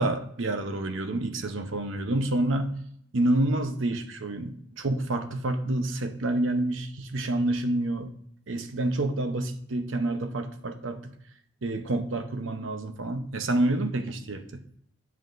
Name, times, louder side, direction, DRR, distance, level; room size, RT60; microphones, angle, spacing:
voice 1, 0.0-2.8 3.1-8.1 8.5-11.0 11.6-14.6, right 1 dB, 80° right, 7 dB, 0.8 m, -28 dB
10.0 x 7.6 x 2.6 m, 0.68 s
head